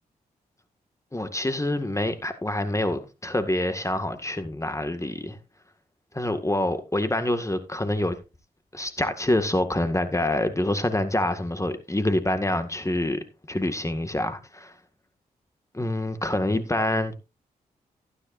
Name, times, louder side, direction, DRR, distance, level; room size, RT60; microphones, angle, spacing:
voice 1, 1.1-5.4 6.1-8.2 8.7-14.7 15.7-17.1, left 1 dB, 20° left, 1.9 m, -26 dB
15.5 x 10.0 x 2.6 m
supercardioid pair, 45°, 16 cm